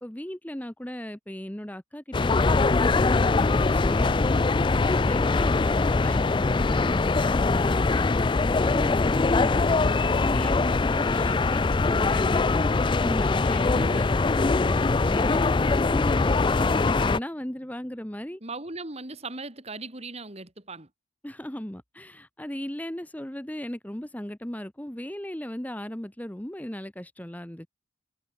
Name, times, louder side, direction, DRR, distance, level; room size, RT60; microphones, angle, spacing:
voice 1, 0.0-4.2 4.7-9.7 10.2-14.2 14.6-18.4 21.2-27.7, equal, 10° left, 1.0 m, -37 dB
sound 1, 2.1-17.2, left 3 dB, 25° left, 0.4 m, -22 dB
voice 2, 13.7-14.0 18.4-20.9, right 2 dB, 30° right, 2.9 m, -37 dB
head